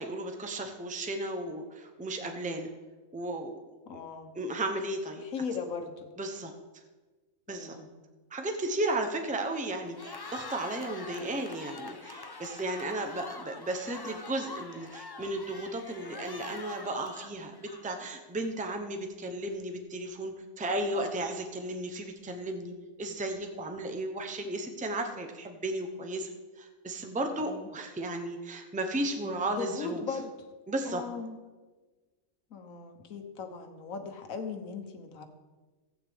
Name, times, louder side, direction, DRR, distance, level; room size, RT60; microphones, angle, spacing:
voice 1, 0.0-2.7 3.1-3.6 3.9-4.0 4.3-5.2 6.2-6.5 7.5-7.7 8.3-26.3 26.6-30.0 30.7-31.0, right 1 dB, 5° right, 4 dB, 0.7 m, -34 dB
voice 2, 3.9-4.3 5.3-6.1 7.5-7.9 27.4-27.7 29.2-30.3 30.8-31.4 32.5-35.3, left 5 dB, 85° left, 6 dB, 1.5 m, -38 dB
Cheering, 9.8-18.1, left 3 dB, 40° left, 0.3 m, -45 dB
15.0 x 8.7 x 3.6 m, 1.3 s
omnidirectional pair, 1.4 m